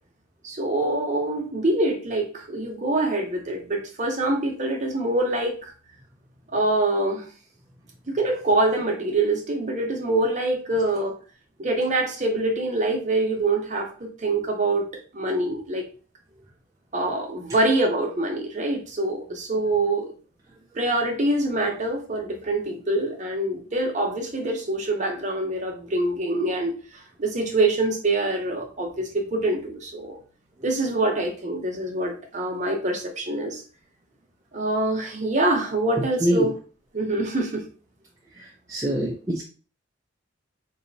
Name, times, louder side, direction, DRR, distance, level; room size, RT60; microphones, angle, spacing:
voice 1, 0.4-5.7 6.5-7.3 8.1-11.1 11.6-13.9 14.2-14.9 15.1-15.9 16.9-20.1 20.7-26.7 27.2-30.1 30.6-33.6 34.5-36.5 36.9-37.6, right 2 dB, 35° right, 1 dB, 0.8 m, -25 dB
voice 2, 38.7-39.4, right 1 dB, 15° right, -3 dB, 0.4 m, -23 dB
4.0 x 2.7 x 2.6 m, 0.38 s
head